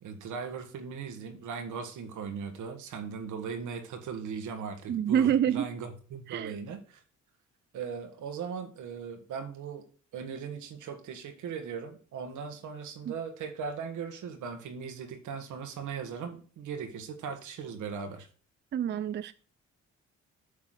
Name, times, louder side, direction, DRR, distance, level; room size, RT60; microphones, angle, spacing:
voice 1, 0.0-7.0 7.7-9.8 10.1-18.3, right 6 dB, 80° right, 1.5 m, -38 dB
voice 2, 4.9-5.7 6.3-6.5 18.7-19.3, right 9 dB, 35° right, 0.4 m, -27 dB
8.1 x 3.8 x 6.4 m
cardioid pair, 90°, 30 cm